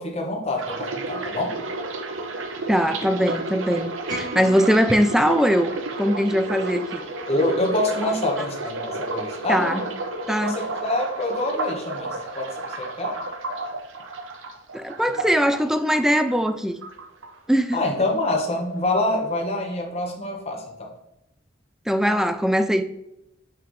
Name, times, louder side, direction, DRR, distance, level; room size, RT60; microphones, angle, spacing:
voice 1, 0.0-1.5 7.2-9.8 10.4-12.5 12.8-13.2 17.7-20.9, left 1 dB, 30° left, 1.2 m, -26 dB
sound 1, 0.6-16.5 16.8-17.7 18.0-18.4, right 2 dB, 75° right, 0.8 m, -32 dB
voice 2, 2.7-5.7 6.0-7.0 9.5-9.8 10.3-10.6 14.7-16.8 17.5-17.8 21.9-22.8, equal, ahead, 0.3 m, -21 dB
sound 2, 4.1-6.5, right 1 dB, 45° right, 2.3 m, -37 dB
5.9 x 5.8 x 3.2 m
head